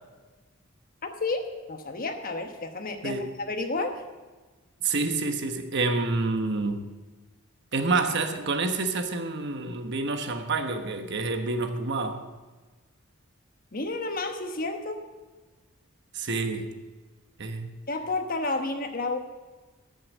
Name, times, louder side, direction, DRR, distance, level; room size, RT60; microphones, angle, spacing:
voice 1, 1.0-3.9 13.7-15.0 17.9-19.2, left 3 dB, 40° left, 1.2 m, -31 dB
voice 2, 4.8-6.9 7.7-12.2 16.1-16.7 17.4-17.7, right 3 dB, 55° right, 1.1 m, -28 dB
13.5 x 6.4 x 7.2 m
head